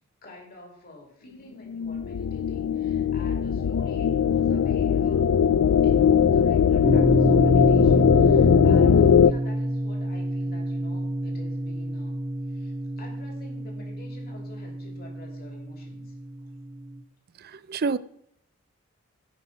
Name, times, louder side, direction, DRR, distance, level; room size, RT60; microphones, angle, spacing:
voice 1, 0.2-5.5 5.8-12.2 12.5-16.2, left 2 dB, 45° left, 1 dB, 3.0 m, -48 dB
sound 1, 1.7-9.3, left 7 dB, 90° left, 0.4 m, -20 dB
sound 2, 6.8-17.0, right 1 dB, 15° right, 1.2 m, -28 dB
voice 2, 17.4-18.0, right 4 dB, 45° right, 16 dB, 0.4 m, -28 dB
16.0 x 5.4 x 5.8 m, 0.72 s
head